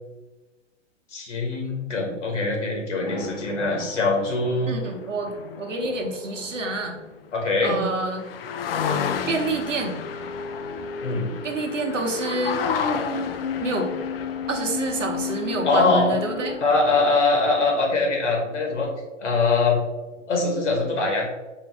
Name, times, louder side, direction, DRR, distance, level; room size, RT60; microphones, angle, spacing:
voice 1, 1.1-4.7 7.3-7.8 11.0-11.3 15.6-16.2 16.6-18.9 19.2-19.8 20.3-21.3, left 3 dB, 70° left, 0 dB, 1.2 m, -22 dB
sound 1, 3.1-7.2 7.7-7.8 8.0-17.1, left 6 dB, 50° left, 0.5 m, -31 dB
voice 2, 4.7-7.0 7.6-8.3 9.3-10.0 11.4-12.6 13.6-13.9 14.5-16.6, right 2 dB, 75° right, 2 dB, 1.0 m, -28 dB
4.7 x 2.7 x 3.4 m, 1.2 s
figure-of-eight pair, 115°, 38 cm